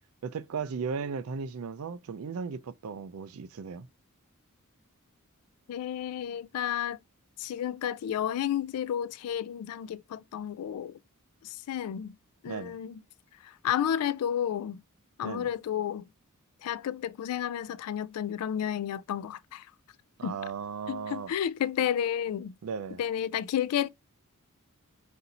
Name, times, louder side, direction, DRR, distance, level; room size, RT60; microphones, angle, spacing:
voice 1, 0.2-3.9 12.5-12.8 15.2-15.5 20.2-21.3 22.6-23.0, right 5 dB, 70° right, 0.4 m, -36 dB
voice 2, 5.7-7.0 7.4-11.0 11.4-12.2 12.4-13.0 13.4-14.8 15.2-16.1 16.6-19.7 20.2-20.4 20.9-22.5 23.0-23.9, left 9 dB, 80° left, 0.3 m, -31 dB
4.2 x 2.7 x 4.0 m
head